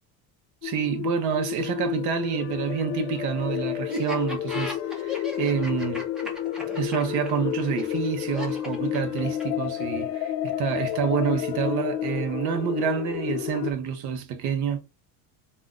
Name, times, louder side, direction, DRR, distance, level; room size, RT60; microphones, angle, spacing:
sound 1, 0.6-13.7, left 11 dB, 65° left, 0.5 m, -30 dB
voice 1, 0.6-6.1 6.7-14.8, right 7 dB, 45° right, 0.6 m, -28 dB
Laughter, 3.9-9.6, left 1 dB, ahead, 0.5 m, -36 dB
2.5 x 2.1 x 3.5 m
cardioid pair, 165°, 40 cm